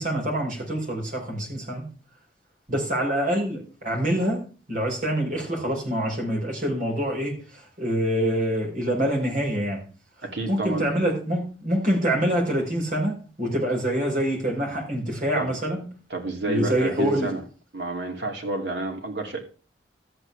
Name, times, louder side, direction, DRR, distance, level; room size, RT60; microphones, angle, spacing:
voice 1, 0.0-1.9 2.7-9.9 10.5-15.9 16.5-17.3, equal, 45° right, 5.2 m, -26 dB
voice 2, 10.2-10.9 15.3-15.5 16.1-17.4 17.7-19.4, right 2 dB, 70° right, 2.8 m, -29 dB
13.5 x 8.3 x 3.4 m
head